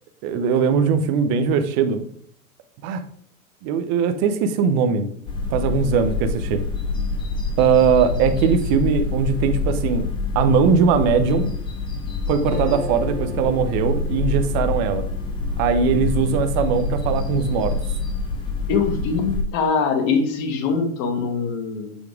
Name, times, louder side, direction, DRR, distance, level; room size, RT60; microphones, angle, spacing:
voice 1, 0.2-2.1 2.8-3.0 3.6-5.1 5.5-6.6 7.6-10.1 10.3-11.5 12.3-15.0 15.6-17.7, right 6 dB, 30° right, 8 dB, 0.6 m, -20 dB
sound 1, 5.3-19.4, left 3 dB, 10° left, 0.7 m, -26 dB
Acoustic guitar, 12.5-16.1, right 3 dB, 60° right, 2.3 m, -37 dB
voice 2, 18.7-22.0, left 5 dB, 40° left, 6 dB, 1.4 m, -23 dB
7.1 x 4.7 x 3.5 m, 0.63 s
hypercardioid pair, 135°, 45 cm